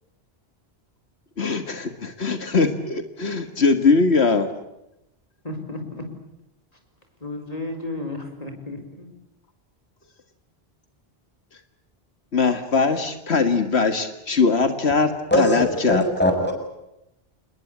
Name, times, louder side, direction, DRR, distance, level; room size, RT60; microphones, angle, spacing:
voice 1, 1.4-4.5 12.3-16.0, left 4 dB, 80° left, 8 dB, 2.1 m, -21 dB
voice 2, 5.4-6.1 7.2-9.1, left 2 dB, 35° left, 6 dB, 4.8 m, -33 dB
voice 3, 15.3-16.5, equal, 10° left, 3 dB, 6.9 m, -21 dB
28.0 x 21.0 x 8.6 m, 0.87 s
omnidirectional pair, 1.1 m